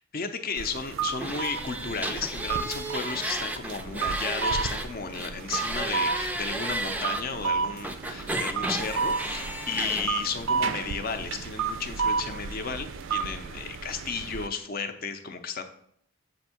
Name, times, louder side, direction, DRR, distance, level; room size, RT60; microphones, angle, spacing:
voice 1, 0.1-15.6, left 5 dB, 50° left, 7 dB, 0.6 m, -34 dB
sound 1, 0.6-14.5, right 5 dB, 70° right, 0.4 m, -32 dB
sound 2, 1.2-4.9 5.1-7.2 7.8-10.1, right 1 dB, 10° right, 0.4 m, -33 dB
7.1 x 2.6 x 5.7 m, 0.68 s
head